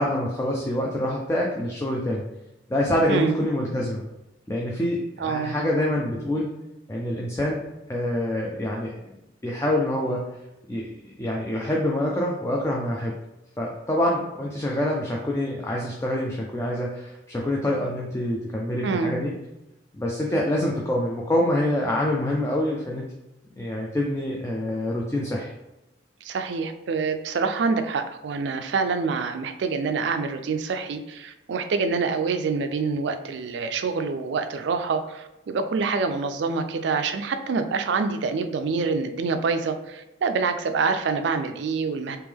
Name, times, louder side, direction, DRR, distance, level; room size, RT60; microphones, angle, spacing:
voice 1, 0.0-2.2 2.7-4.0 4.5-6.5 6.9-7.6 7.9-9.0 9.4-10.3 10.7-13.1 13.6-19.3 19.9-23.1 23.5-25.5, left 1 dB, 15° left, -2 dB, 0.3 m, -26 dB
voice 2, 5.2-5.6 18.8-19.1 26.2-42.2, right 4 dB, 70° right, 8 dB, 0.3 m, -26 dB
3.4 x 2.9 x 3.4 m, 0.95 s
head